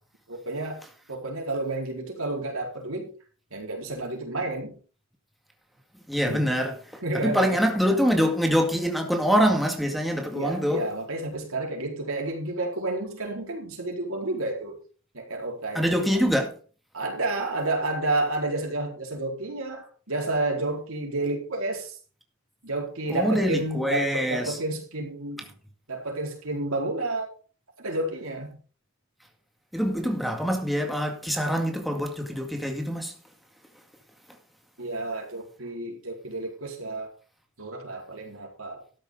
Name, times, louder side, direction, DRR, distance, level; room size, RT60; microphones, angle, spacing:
voice 1, 0.3-0.8 1.1-3.1 3.5-4.8 6.3-6.6 7.0-7.8 10.3-14.8 15.1-16.1 16.9-22.0 22.6-25.5 25.9-27.3 27.8-28.6 34.8-37.1 37.6-38.8, right 2 dB, 90° right, 4.4 m, -30 dB
voice 2, 6.1-6.7 7.2-10.9 15.7-16.6 23.1-24.6 29.7-33.1, equal, ahead, 2.1 m, -24 dB
13.0 x 10.5 x 3.9 m
head